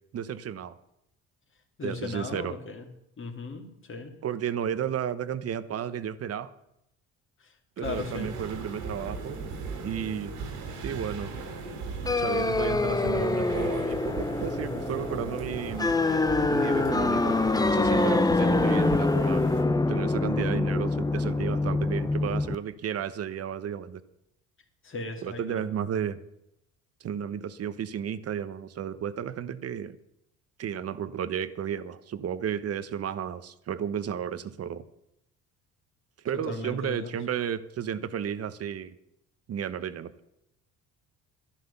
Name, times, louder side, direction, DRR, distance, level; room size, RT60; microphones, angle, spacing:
voice 1, 0.1-0.8 1.8-2.6 4.2-6.5 7.8-9.4 9.8-10.3 10.8-11.3 12.2-15.9 16.5-17.4 17.7-19.5 19.9-24.0 25.2-26.2 27.0-30.0 30.6-34.8 36.2-38.9 39.5-40.1, right 8 dB, 50° right, 13 dB, 1.1 m, -33 dB
voice 2, 1.8-2.9 3.2-4.1 7.4-7.5 7.8-8.3 24.8-25.6 36.5-37.1, left 3 dB, 40° left, 3 dB, 2.9 m, -37 dB
sound 1, 7.8-19.6, right 4 dB, 85° right, 3.4 m, -38 dB
sound 2, 12.1-22.6, left 3 dB, 10° left, 0.8 m, -25 dB
12.0 x 11.0 x 7.0 m, 0.81 s
supercardioid pair, 80°, 30 cm